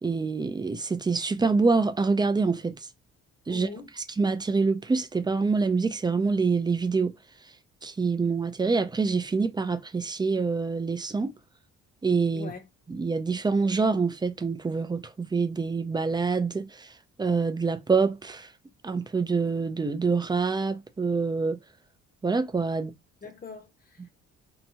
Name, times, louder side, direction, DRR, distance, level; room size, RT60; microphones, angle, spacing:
voice 1, 0.0-2.8 3.5-3.7 4.2-7.1 7.8-11.3 12.0-12.5 12.9-16.9 17.2-18.5 18.8-21.6 22.2-22.9, right 4 dB, 15° right, 0.3 m, -26 dB
voice 2, 3.5-3.9 12.3-12.7 23.2-24.2, left 4 dB, 30° left, 0.8 m, -42 dB
2.8 x 2.2 x 2.7 m
cardioid pair, 90°, 30 cm